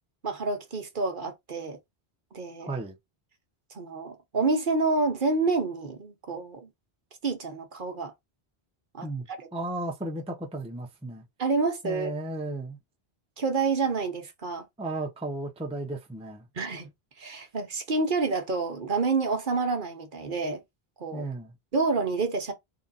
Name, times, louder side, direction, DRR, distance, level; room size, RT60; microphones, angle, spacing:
voice 1, 0.2-1.8 2.3-2.7 3.7-6.7 7.2-8.1 8.9-9.4 11.4-12.1 13.4-14.7 16.5-16.9 17.2-20.6 21.0-21.3 21.7-22.5, right 3 dB, 55° right, 1.0 m, -28 dB
voice 2, 2.6-3.0 9.0-9.3 9.5-11.2 11.8-12.8 14.8-16.5 21.1-21.5, right 2 dB, 5° right, 0.6 m, -34 dB
3.8 x 2.4 x 4.0 m
omnidirectional pair, 1.1 m